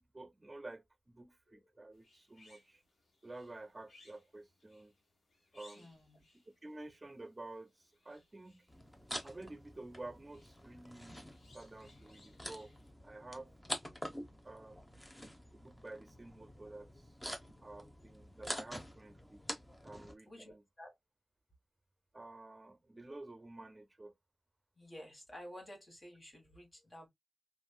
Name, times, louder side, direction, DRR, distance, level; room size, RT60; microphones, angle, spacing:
voice 1, 0.0-2.8 3.2-4.9 5.5-6.0 6.6-8.7 9.2-11.3 11.5-12.7 13.0-13.5 14.4-14.9 15.5-17.1 17.6-19.4 19.8-20.6 22.1-24.1, right 2 dB, 35° right, 0.6 m, -51 dB
sound 1, 1.9-12.9, left 2 dB, 85° left, 1.2 m, -67 dB
voice 2, 5.7-6.2 20.3-20.9 24.8-27.1, equal, 40° left, 1.3 m, -52 dB
sound 2, 8.7-20.1, equal, 15° left, 0.9 m, -47 dB
3.0 x 2.4 x 2.2 m
cardioid pair, 50°, 0 cm